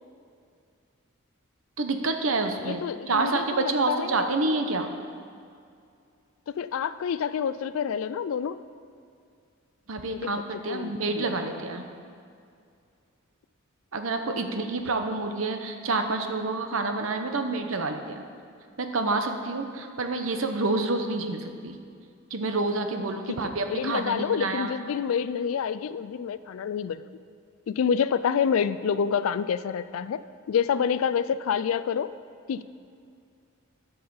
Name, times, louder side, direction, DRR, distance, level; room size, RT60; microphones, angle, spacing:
voice 1, 1.8-4.9 9.9-11.8 13.9-18.2 18.8-21.8 22.3-24.7, right 3 dB, 70° right, 6 dB, 0.9 m, -28 dB
voice 2, 2.6-4.3 6.5-8.6 10.1-10.4 10.7-11.2 22.9-23.0 23.4-27.0 27.7-30.2 30.5-32.1 32.5-32.6, left 7 dB, 70° left, 14 dB, 0.3 m, -28 dB
11.5 x 5.5 x 7.0 m, 2.3 s
head